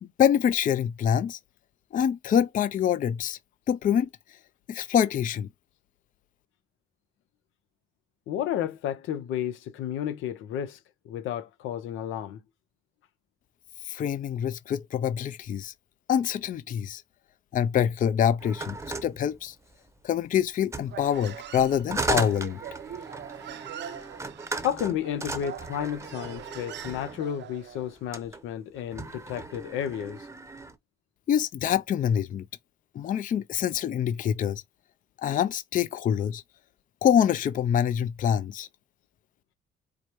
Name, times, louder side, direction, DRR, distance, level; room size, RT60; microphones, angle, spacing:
voice 1, 0.0-1.4 1.9-3.4 3.7-4.1 4.7-5.5 13.8-15.7 16.1-17.0 17.5-19.6 20.0-22.6 31.3-32.4 32.9-34.6 35.2-36.4 37.0-38.7, left 9 dB, 45° left, 0.4 m, -25 dB
voice 2, 8.3-10.8 11.0-12.4 24.6-30.3, left 10 dB, 90° left, 0.7 m, -32 dB
sound 1, 18.4-20.0 20.6-27.3 28.0-28.4 28.8-30.8, right 3 dB, 15° right, 0.7 m, -36 dB
Human voice, 20.9-27.9, right 10 dB, 65° right, 0.6 m, -43 dB
4.8 x 2.1 x 2.9 m
cardioid pair, 90°, 20 cm